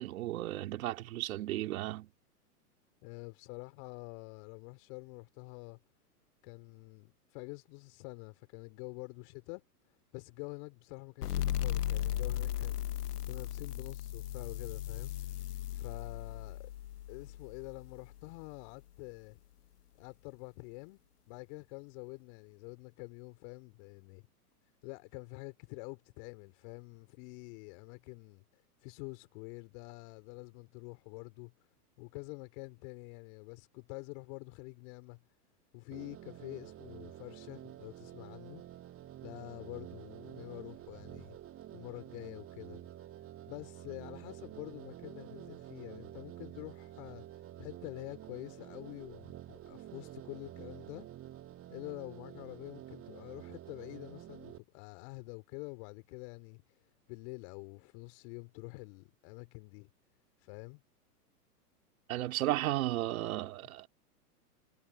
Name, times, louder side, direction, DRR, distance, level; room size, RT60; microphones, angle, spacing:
voice 1, 0.0-2.1 62.1-63.9, right 15 dB, 60° right, 3.7 m, -34 dB
voice 2, 3.0-5.8 6.4-9.6 10.1-12.9 13.3-15.2 15.7-16.7 17.1-19.4 20.0-21.0 21.3-24.3 24.8-31.5 32.0-35.2 35.7-38.6 39.2-41.4 41.7-42.8 43.5-47.2 47.6-51.1 51.7-56.8 57.1-59.9 60.4-60.8, left 31 dB, 45° left, 3.4 m, -47 dB
sound 1, 11.2-18.5, left 13 dB, 75° left, 1.2 m, -37 dB
sound 2, 35.9-54.6, right 12 dB, 30° right, 7.7 m, -49 dB
hypercardioid pair, 125°, 47 cm